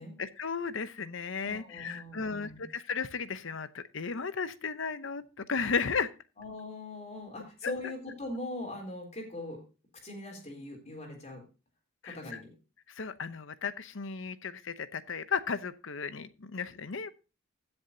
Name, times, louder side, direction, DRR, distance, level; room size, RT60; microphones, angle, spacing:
voice 1, 0.2-6.1 7.6-7.9 12.0-12.4 13.0-17.1, left 5 dB, 65° left, 14 dB, 0.8 m, -35 dB
voice 2, 1.4-2.6 6.4-9.6 10.0-11.4 12.0-12.5, left 2 dB, 35° left, 1 dB, 3.7 m, -41 dB
16.0 x 7.1 x 2.8 m, 0.31 s
head